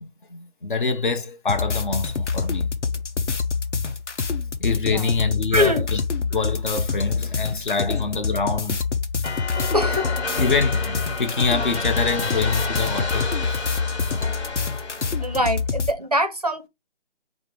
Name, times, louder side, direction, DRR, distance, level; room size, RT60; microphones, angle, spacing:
voice 1, 0.0-2.7 4.6-6.0 6.3-8.8 10.4-13.6 14.0-14.6, left 4 dB, 45° left, 0.8 m, -26 dB
sound 1, 1.5-15.9, left 5 dB, 85° left, 0.8 m, -26 dB
voice 2, 5.5-5.9 7.9-8.0 9.7-10.5 15.2-16.7, equal, 35° right, 0.5 m, -24 dB
sound 2, 9.2-15.5, left 3 dB, 65° left, 1.4 m, -31 dB
5.1 x 2.1 x 4.6 m
figure-of-eight pair, 165°, 35 cm